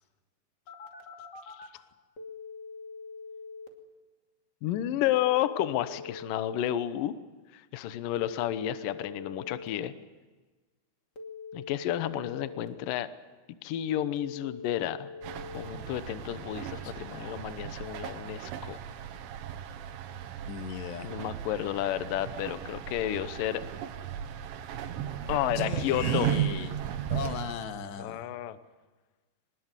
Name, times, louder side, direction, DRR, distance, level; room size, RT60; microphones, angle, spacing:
Telephone, 0.7-1.7 2.2-3.7 5.2-6.7 8.2-9.7 11.2-12.7 14.2-15.7, left 4 dB, 30° left, 2.1 m, -43 dB
voice 1, 4.6-7.2 7.5-9.9 11.5-13.1 13.6-15.1 15.5-18.8 21.0-23.6 25.3-26.3 28.0-28.6, left 12 dB, 90° left, 12 dB, 1.9 m, -31 dB
sound 1, 15.2-27.5, right 10 dB, 90° right, 3.8 m, -36 dB
voice 2, 16.8-17.4 20.5-21.1 25.6-26.8 27.1-28.3, left 8 dB, 70° left, 7 dB, 3.4 m, -38 dB
23.5 x 20.5 x 8.2 m, 1.3 s
omnidirectional pair, 5.4 m